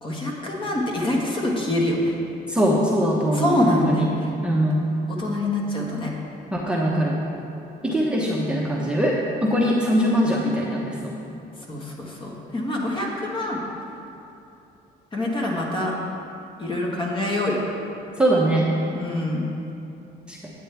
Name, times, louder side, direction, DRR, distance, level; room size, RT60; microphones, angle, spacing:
voice 1, 0.0-2.1 3.3-4.3 5.1-6.1 11.7-13.6 15.1-15.9 16.6-17.6 18.9-19.5, left 1 dB, 30° left, -2 dB, 1.5 m, -25 dB
voice 2, 2.5-4.0 4.4-4.8 6.5-7.2 7.8-11.1 18.2-18.7 20.3-20.4, equal, 5° right, -4 dB, 0.9 m, -22 dB
9.4 x 8.2 x 3.4 m, 2.8 s
cardioid pair, 110°, 17 cm